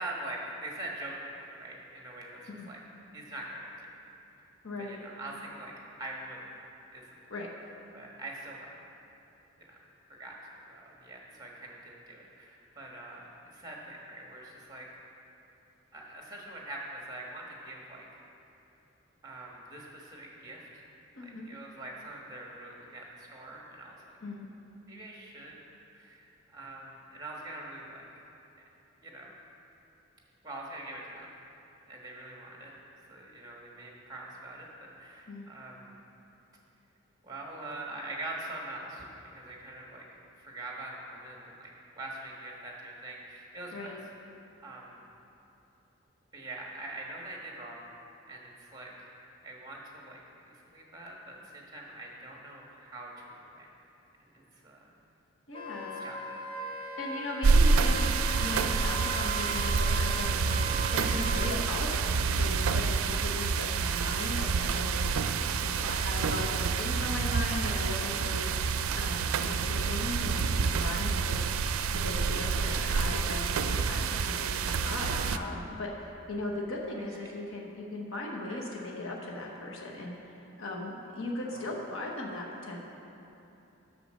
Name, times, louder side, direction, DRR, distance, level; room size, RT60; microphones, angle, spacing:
voice 1, 0.0-2.8 3.1-3.9 4.8-5.7 6.0-6.7 6.9-7.1 7.9-8.7 9.6-9.8 10.1-10.4 10.7-14.9 15.9-18.0 19.2-20.8 21.2-24.2 24.9-25.5 25.9-28.1 29.0-29.3 30.4-31.4 31.9-32.7 33.1-35.9 37.2-39.0 39.3-40.0 40.4-44.0 44.6-45.0 46.3-47.8 48.2-49.1 49.4-53.7 54.2-54.9 56.0-56.2 72.5-72.8 78.5-78.6 81.5-81.7, right 1 dB, 20° right, -2 dB, 1.3 m, -43 dB
voice 2, 4.6-5.0 7.3-7.5 21.2-21.5 24.2-24.5 35.3-35.5 43.7-44.0 55.5-56.0 57.0-58.1 58.4-60.5 60.9-65.1 65.6-71.5 71.9-82.8, left 2 dB, 70° left, -1 dB, 1.0 m, -38 dB
Wind instrument woodwind instrument, 55.5-61.6, right 1 dB, 25° left, 0.7 m, -38 dB
sound 1, 57.4-75.4, right 5 dB, 85° right, 0.4 m, -28 dB
8.1 x 6.8 x 6.4 m, 3.0 s
head